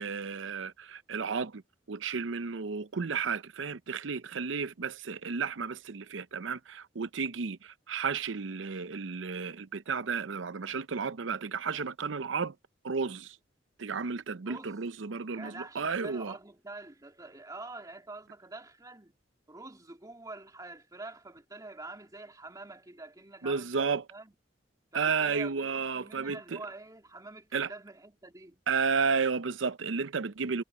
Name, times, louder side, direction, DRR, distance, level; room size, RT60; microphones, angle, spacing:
voice 1, 0.0-1.6 1.9-12.5 12.8-13.4 13.8-16.4 23.4-24.0 24.9-26.6 27.5-27.7 28.7-30.6, right 5 dB, 80° right, 0.7 m, -32 dB
voice 2, 14.4-14.8 15.3-19.1 19.5-24.3 24.9-28.6, right 2 dB, 20° right, 3.1 m, -46 dB
head